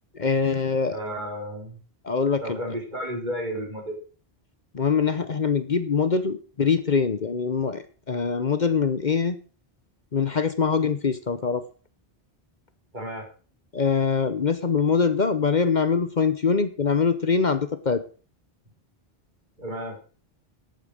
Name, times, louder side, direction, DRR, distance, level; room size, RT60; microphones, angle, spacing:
voice 1, 0.1-1.0 2.0-2.6 4.7-9.4 10.1-11.6 13.7-18.0, left 5 dB, 50° left, 12 dB, 1.0 m, -23 dB
voice 2, 0.9-1.8 2.4-4.0 12.9-13.3 19.6-20.0, equal, 50° right, 1 dB, 4.8 m, -32 dB
11.5 x 8.9 x 6.4 m, 0.38 s
omnidirectional pair, 1.0 m